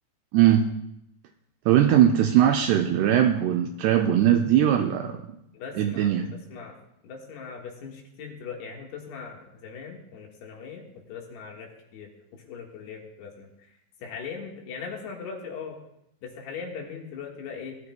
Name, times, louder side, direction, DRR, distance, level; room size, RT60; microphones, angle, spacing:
voice 1, 0.3-0.7 1.7-5.2 5.8-6.3, right 10 dB, 85° right, 4 dB, 2.4 m, -20 dB
voice 2, 5.5-6.1 6.5-6.7 7.0-13.5 14.0-15.8 16.2-17.8, left 5 dB, 70° left, 0 dB, 3.5 m, -39 dB
20.5 x 13.0 x 2.3 m, 0.80 s
omnidirectional pair, 5.3 m